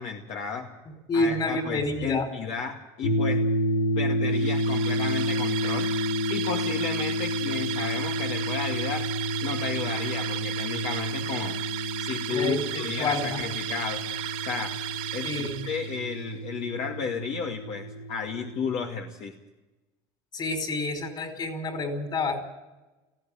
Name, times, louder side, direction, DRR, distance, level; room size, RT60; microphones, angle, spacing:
voice 1, 0.0-0.7 1.1-3.4 4.0-5.9 6.3-9.1 9.4-11.6 12.0-14.0 14.4-14.7 15.1-19.3, left 5 dB, 55° left, 1 dB, 2.3 m, -33 dB
voice 2, 0.9-2.3 12.3-13.4 15.2-15.6 20.3-22.4, left 2 dB, 35° left, 6 dB, 4.8 m, -29 dB
sound 1, 3.0-18.9, equal, 90° left, 2.5 m, -30 dB
sound 2, 4.3-16.1, right 13 dB, 65° right, 2.3 m, -35 dB
19.0 x 15.5 x 9.0 m, 1.1 s
supercardioid pair, 115°, 13 cm